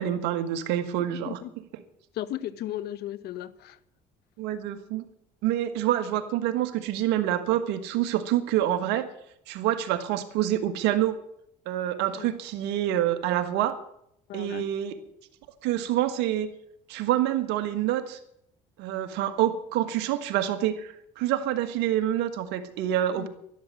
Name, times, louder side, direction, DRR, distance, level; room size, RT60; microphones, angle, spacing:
voice 1, 0.0-1.4 4.4-5.1 5.4-9.1 9.5-11.2 11.7-13.8 14.3-15.0 15.6-16.5 16.9-18.2 18.8-23.3, right 12 dB, 80° right, 1.6 m, -27 dB
voice 2, 1.1-1.5 2.1-3.8 12.2-12.3 14.3-14.7 23.1-23.3, left 12 dB, 70° left, 1.0 m, -35 dB
12.0 x 12.0 x 7.5 m
supercardioid pair, 85°, 17 cm